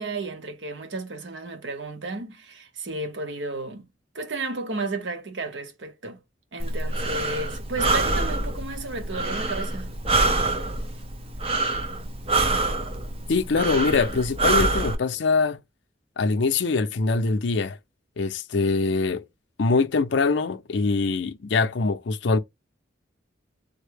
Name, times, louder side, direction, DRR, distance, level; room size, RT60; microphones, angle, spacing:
voice 1, 0.0-3.8 4.1-6.2 6.5-9.9, right 3 dB, 75° right, 0.9 m, -33 dB
Breathing, 6.6-14.9, right 2 dB, 35° right, 0.7 m, -26 dB
voice 2, 13.3-15.6 16.2-17.8 18.2-19.2 19.6-22.4, left 4 dB, 70° left, 0.5 m, -23 dB
3.5 x 2.2 x 3.3 m
head